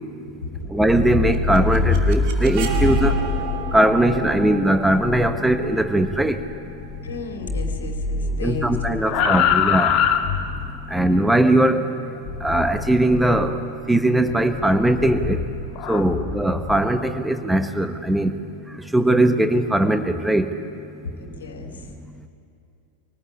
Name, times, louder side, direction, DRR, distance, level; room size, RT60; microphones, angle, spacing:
sound 1, 0.7-7.2 7.4-10.9 12.3-13.5 14.2-16.8, left 5 dB, 40° left, 1.7 m, -25 dB
voice 1, 0.7-3.2 3.7-6.4 8.4-10.0 10.9-11.9 12.4-13.6 13.9-15.4 15.9-18.3 18.7-20.6, right 1 dB, 5° right, 8 dB, 1.3 m, -20 dB
sound 2, 1.1-7.0, right 6 dB, 45° right, 2.4 m, -33 dB
voice 2, 7.0-8.8 9.0-9.4 15.9-16.2 21.2-21.9, left 4 dB, 65° left, 3 dB, 2.9 m, -34 dB
25.0 x 18.5 x 8.6 m, 2.6 s
figure-of-eight pair, 90°, 0 cm